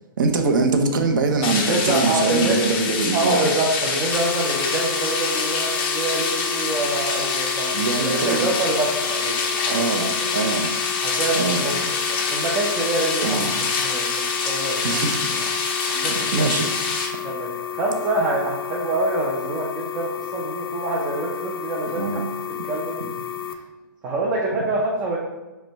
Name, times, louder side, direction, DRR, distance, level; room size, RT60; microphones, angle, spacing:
voice 1, 0.2-3.5 7.7-8.5 9.7-10.7 11.3-11.6 13.2-13.5 14.8-15.5 15.8-16.7 22.0-22.2, right 3 dB, 60° right, 4 dB, 0.6 m, -23 dB
sound 1, 1.4-17.1, left 4 dB, 30° left, 0.6 m, -25 dB
voice 2, 1.6-2.6 3.1-10.3 11.0-13.5 13.8-14.9 15.3-15.5 15.9-16.5 17.2-22.0 22.7-23.0 24.0-25.2, right 2 dB, 15° right, -3 dB, 0.4 m, -26 dB
sound 2, 4.1-23.5, left 10 dB, 90° left, 0.5 m, -32 dB
5.1 x 2.2 x 4.4 m, 1.1 s
hypercardioid pair, 155°, 12 cm